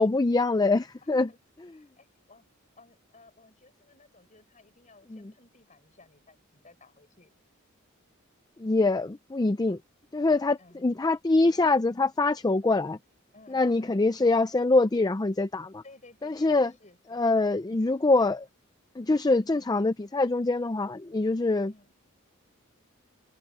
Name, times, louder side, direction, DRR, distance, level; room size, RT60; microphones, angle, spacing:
voice 1, 0.0-1.3 5.1-5.2 8.6-9.8 10.1-13.0 13.5-15.8 16.2-16.7 17.1-18.5 19.0-21.9, left 2 dB, 20° left, 0.5 m, -24 dB
voice 2, 1.0-1.4 1.7-2.4 2.7-7.3 10.6-11.0 13.3-14.0 15.8-17.2 19.5-19.7 21.6-21.9, left 3 dB, 35° left, 6.9 m, -57 dB
head